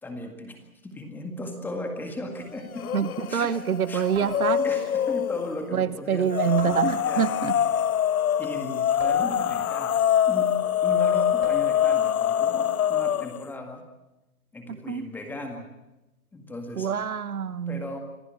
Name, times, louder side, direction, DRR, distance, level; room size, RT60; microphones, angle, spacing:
voice 1, 0.0-2.9 3.3-3.6 3.9-4.1 4.6-7.7 8.4-10.5 10.8-13.8 14.5-15.7 16.3-17.1 17.7-18.0, left 1 dB, 5° left, 4 dB, 1.9 m, -37 dB
sound 1, 2.3-2.7 4.1-4.9 6.6-7.4 9.0-9.9 11.4-12.0, right 4 dB, 40° right, 5.1 m, -42 dB
sound 2, 2.7-3.3 3.7-5.5 6.3-13.4, left 9 dB, 75° left, 0.7 m, -24 dB
voice 2, 2.9-4.7 5.7-7.5 14.7-15.1 16.8-17.8, right 7 dB, 75° right, 15 dB, 1.4 m, -26 dB
26.5 x 15.5 x 8.8 m, 0.98 s
hypercardioid pair, 150°, 44 cm